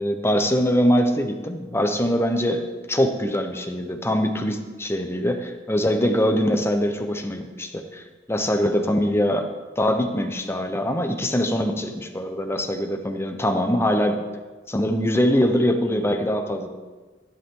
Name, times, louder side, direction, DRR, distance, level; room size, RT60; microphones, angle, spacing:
voice 1, 0.0-9.5 9.8-14.2 14.7-16.7, equal, 15° left, 5 dB, 1.0 m, -23 dB
15.0 x 10.5 x 3.9 m, 1.3 s
head